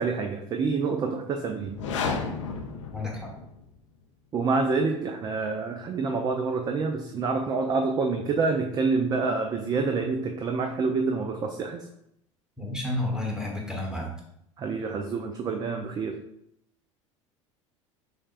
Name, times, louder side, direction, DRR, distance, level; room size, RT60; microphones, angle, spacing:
voice 1, 0.0-1.8 4.3-11.9 14.6-16.2, right 4 dB, 25° right, 5 dB, 0.3 m, -27 dB
sound 1, 1.7-3.8, left 4 dB, 70° left, 0.5 m, -32 dB
voice 2, 12.6-14.1, left 2 dB, 5° right, -2 dB, 1.1 m, -30 dB
6.3 x 2.2 x 2.4 m, 0.77 s
figure-of-eight pair, 70°, 17 cm